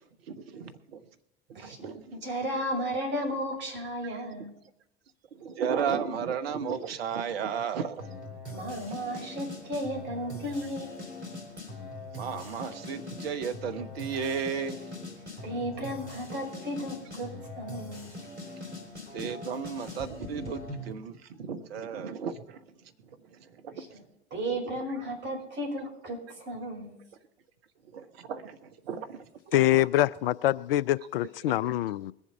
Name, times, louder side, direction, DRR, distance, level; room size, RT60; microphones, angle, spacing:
voice 1, 0.3-1.0 1.5-2.1 4.0-4.2 5.3-8.1 12.1-14.8 19.1-24.0 27.9-29.6 31.5-31.6, right 6 dB, 65° right, 10 dB, 1.1 m, -34 dB
voice 2, 1.5-1.9 2.2-4.5 8.5-11.1 15.4-18.1 23.7-24.0 24.3-27.0, equal, 35° right, 0 dB, 5.7 m, -34 dB
sound 1, 8.0-20.9, left 2 dB, 85° right, 3.0 m, -42 dB
voice 3, 29.5-32.1, left 14 dB, 60° left, 20 dB, 0.4 m, -25 dB
21.5 x 7.2 x 5.6 m, 0.83 s
figure-of-eight pair, 75°, 33 cm